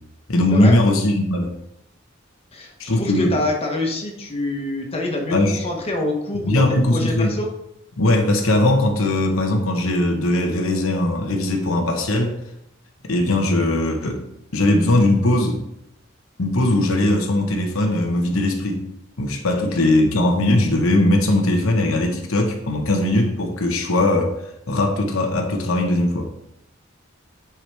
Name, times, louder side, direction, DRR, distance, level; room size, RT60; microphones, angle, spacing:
voice 1, 0.3-1.5 2.8-3.3 5.3-5.6 6.4-7.4 8.0-12.3 13.0-14.2 14.5-15.6 16.4-18.9 19.2-24.3 24.7-26.3, left 1 dB, 90° left, 3 dB, 1.0 m, -19 dB
voice 2, 2.5-7.5 19.7-19.8, left 2 dB, 30° left, 0 dB, 1.3 m, -26 dB
9.4 x 4.8 x 3.4 m, 0.79 s
head